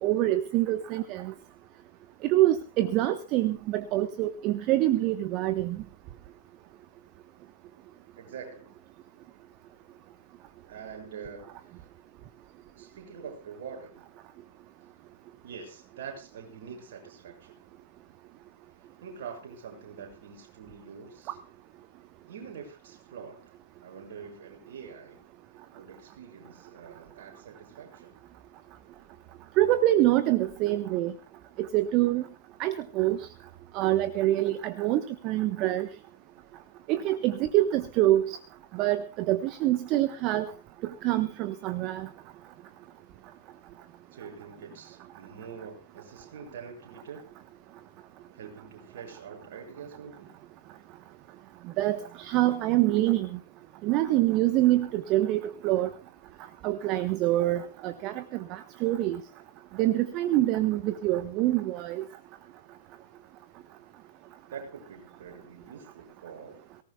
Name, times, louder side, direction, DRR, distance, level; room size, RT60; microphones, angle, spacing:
voice 1, 0.0-1.3 2.2-5.8 29.6-31.1 31.7-32.2 32.6-33.3 33.7-35.9 36.9-38.4 38.7-40.5 41.0-42.1 51.8-53.4 53.8-55.9 56.6-58.2 58.5-59.2 59.8-62.0, right 15 dB, 35° right, 11 dB, 1.1 m, -25 dB
voice 2, 8.2-8.7 10.6-11.8 12.7-14.0 15.4-17.6 19.0-21.4 22.3-23.4 23.8-25.2 25.7-28.1 44.1-47.2 48.3-50.3 64.5-66.7, right 6 dB, 55° right, 2 dB, 7.1 m, -45 dB
23.5 x 18.5 x 2.3 m, 0.34 s
figure-of-eight pair, 105°, 0 cm